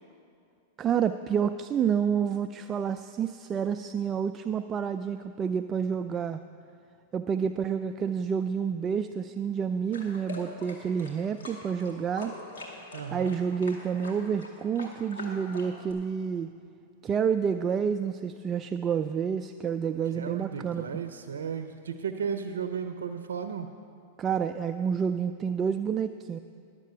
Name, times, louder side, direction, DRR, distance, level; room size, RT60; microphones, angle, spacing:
voice 1, 0.8-6.4 7.1-12.3 13.1-16.5 17.0-20.8 24.2-26.4, right 7 dB, 30° right, 9 dB, 0.3 m, -29 dB
sound 1, 9.9-15.9, left 2 dB, 70° left, 2.2 m, -43 dB
voice 2, 12.9-13.4 20.1-23.7, right 7 dB, 85° right, 8 dB, 0.5 m, -34 dB
11.5 x 7.5 x 6.7 m, 2.4 s
hypercardioid pair, 105°, 0 cm